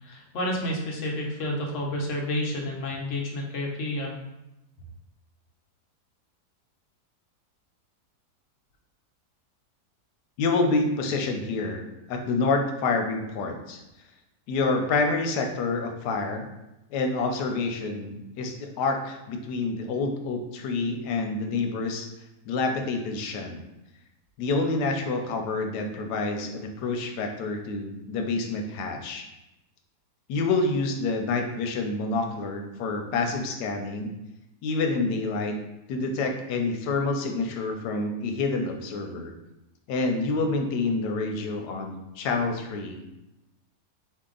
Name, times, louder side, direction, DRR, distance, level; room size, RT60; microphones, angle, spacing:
voice 1, 0.0-4.1, left 1 dB, 55° left, -1 dB, 1.1 m, -30 dB
voice 2, 10.4-11.8 12.1-13.8 14.5-16.5 16.9-22.1 22.5-23.6 24.4-29.3 30.3-34.1 34.6-35.6 35.9-39.3 39.9-43.0, left 3 dB, 85° left, 4 dB, 1.3 m, -27 dB
4.3 x 2.8 x 3.8 m, 0.93 s
omnidirectional pair, 1.8 m